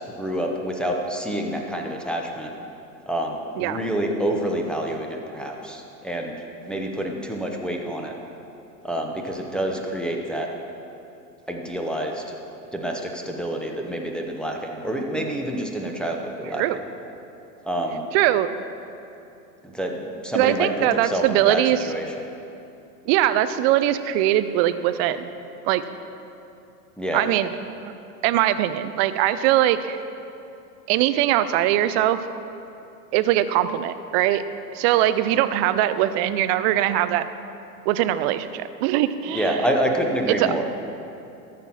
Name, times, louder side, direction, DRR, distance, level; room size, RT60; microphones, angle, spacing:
voice 1, 0.0-2.5 3.1-6.3 6.7-8.1 8.8-10.5 11.5-12.2 12.7-16.8 17.7-18.0 19.6-20.7 21.0-22.1 27.0-27.2 39.3-40.7, right 1 dB, ahead, 0 dB, 0.9 m, -27 dB
voice 2, 18.1-18.6 20.3-21.9 23.1-25.3 25.6-25.8 27.1-27.5 27.8-27.9 28.2-30.0 30.9-32.2 33.1-34.4 34.7-37.2 37.9-39.6 40.3-40.5, right 13 dB, 40° right, 12 dB, 0.5 m, -21 dB
13.5 x 5.9 x 5.7 m, 2.8 s
hypercardioid pair, 110°, 48 cm